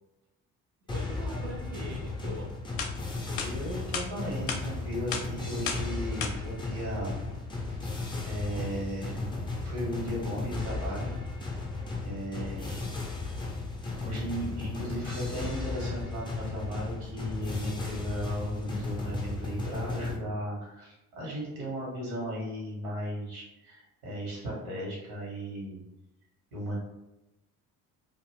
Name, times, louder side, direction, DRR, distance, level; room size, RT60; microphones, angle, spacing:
sound 1, 0.9-20.2, left 3 dB, 10° left, 0.5 m, -35 dB
voice 1, 0.9-2.6 8.9-9.0 12.3-12.9 20.0-20.2, right 2 dB, 50° right, 0 dB, 0.5 m, -43 dB
sound 2, 2.8-2.9 3.4-3.5 3.9-4.1 4.5-4.6 5.1-5.3 5.7-5.9 6.2-6.3, left 6 dB, 55° left, 0.6 m, -32 dB
voice 2, 3.4-7.2 7.6-8.0 8.2-9.3 9.6-11.1 12.0-12.7 14.0-25.8 26.5-26.8, equal, 75° right, -4 dB, 1.3 m, -36 dB
2.5 x 2.5 x 3.3 m, 0.96 s
figure-of-eight pair, 45°, 45 cm